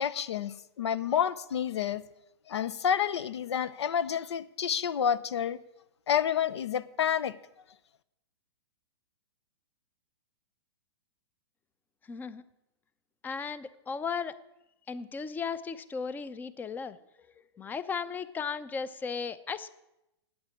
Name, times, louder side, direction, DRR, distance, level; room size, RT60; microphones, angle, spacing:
voice 1, 0.0-2.0 2.5-5.6 6.1-7.4, left 8 dB, 75° left, 18 dB, 0.7 m, -29 dB
voice 2, 12.1-12.4 13.2-14.4 14.9-17.0 17.6-19.7, left 5 dB, 15° left, 16 dB, 0.5 m, -35 dB
8.8 x 8.7 x 9.5 m, 0.91 s
hypercardioid pair, 130°, 14 cm